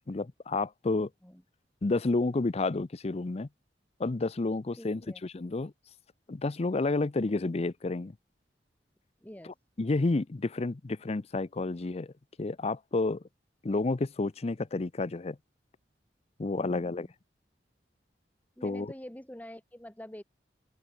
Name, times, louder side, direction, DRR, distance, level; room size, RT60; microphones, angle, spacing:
voice 1, 0.1-1.1 1.8-3.5 4.0-5.7 6.3-8.1 9.8-12.1 12.4-13.2 13.6-15.4 16.4-17.1 18.6-18.9, left 3 dB, 35° left, 0.5 m, -30 dB
voice 2, 4.8-5.2 7.2-7.3 9.2-9.5 16.6-17.1 18.6-20.2, equal, 10° left, 1.9 m, -46 dB
open air
head